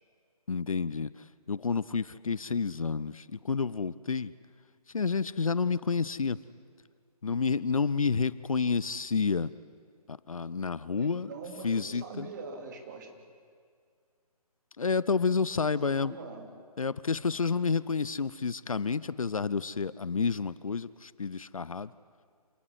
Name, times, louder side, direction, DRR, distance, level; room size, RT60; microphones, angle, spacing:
voice 1, 0.5-1.1 1.5-4.3 4.9-6.4 7.2-9.5 10.1-11.3 11.6-12.3 14.8-16.2 16.8-21.9, left 5 dB, 60° left, 18 dB, 0.7 m, -29 dB
voice 2, 11.0-13.2 15.8-16.5, right 4 dB, 30° right, 3 dB, 2.8 m, -43 dB
27.5 x 17.0 x 9.8 m, 2.1 s
figure-of-eight pair, 145°, 20 cm